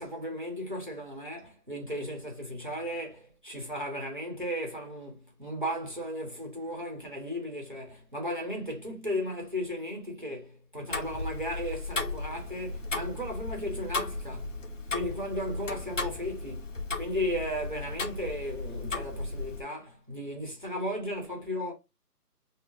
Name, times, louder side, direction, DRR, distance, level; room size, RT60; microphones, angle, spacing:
voice 1, 0.0-14.6 14.9-16.7 17.0-21.7, equal, 30° right, 0.9 m, -35 dB
Tick-tock, 10.9-19.6, left 3 dB, 55° left, 0.8 m, -36 dB
4.0 x 2.1 x 3.6 m
figure-of-eight pair, 175°, 47 cm